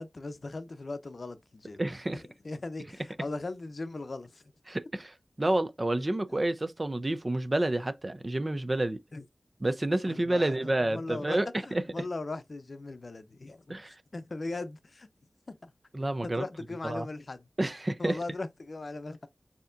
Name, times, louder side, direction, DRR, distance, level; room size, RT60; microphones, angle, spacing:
voice 1, 0.0-1.8 2.1-4.4 9.1-9.2 10.1-15.1 15.5-15.7 16.2-17.5 18.0-19.3, left 2 dB, 60° left, 0.6 m, -39 dB
voice 2, 1.8-2.2 4.7-5.1 5.4-9.0 9.6-11.8 13.7-13.9 15.9-16.4 16.8-17.1 17.6-18.2, right 1 dB, 35° right, 0.5 m, -29 dB
6.7 x 2.8 x 2.5 m
wide cardioid pair, 70°, 0 cm